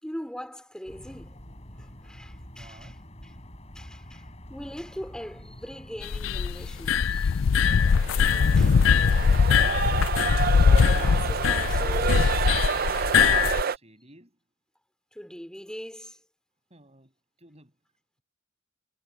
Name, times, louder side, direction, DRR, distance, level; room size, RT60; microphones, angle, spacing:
voice 1, 0.0-1.4 1.8-2.9 3.7-7.5 8.6-8.7 10.6-12.4 15.1-16.2, equal, 5° left, 4.0 m, -41 dB
sound 1, 0.9-11.9, equal, 35° left, 7.2 m, -46 dB
voice 2, 2.5-3.0 5.0-5.1 13.6-14.4 16.7-17.8, right 1 dB, 35° right, 7.9 m, -55 dB
sound 2, 6.0-13.6, left 6 dB, 75° left, 0.4 m, -21 dB
sound 3, 7.6-13.8, right 6 dB, 50° right, 0.5 m, -29 dB
head